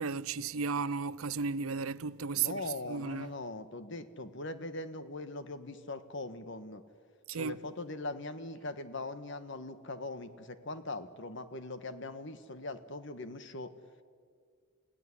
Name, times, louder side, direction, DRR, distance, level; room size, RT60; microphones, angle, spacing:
voice 1, 0.0-3.3 7.3-7.6, right 5 dB, 80° right, 0.6 m, -34 dB
voice 2, 2.4-6.8 7.4-13.7, left 2 dB, 55° left, 1.4 m, -41 dB
30.0 x 16.5 x 9.9 m
head